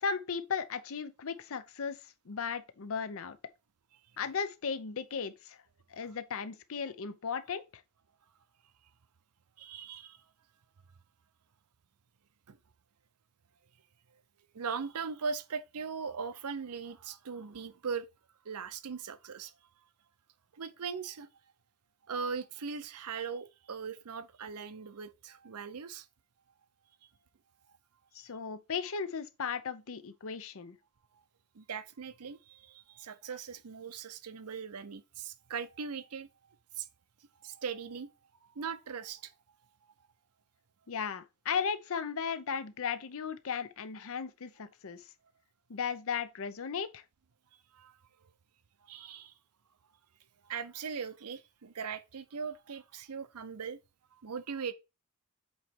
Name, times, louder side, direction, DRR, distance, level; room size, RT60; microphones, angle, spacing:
voice 1, 0.0-2.0 2.3-3.4 4.2-5.6 5.9-7.6 28.1-30.8 40.9-45.0 45.7-47.0, left 6 dB, 65° left, 0.6 m, -36 dB
voice 2, 9.6-10.2 12.5-12.6 14.5-18.1 18.5-19.5 20.5-21.3 22.1-26.1 31.5-36.3 36.8-36.9 37.4-38.1 38.4-39.3 47.7-47.9 48.8-49.3 50.5-53.8 54.1-54.7, right 6 dB, 90° right, 0.6 m, -39 dB
8.1 x 3.1 x 4.5 m
head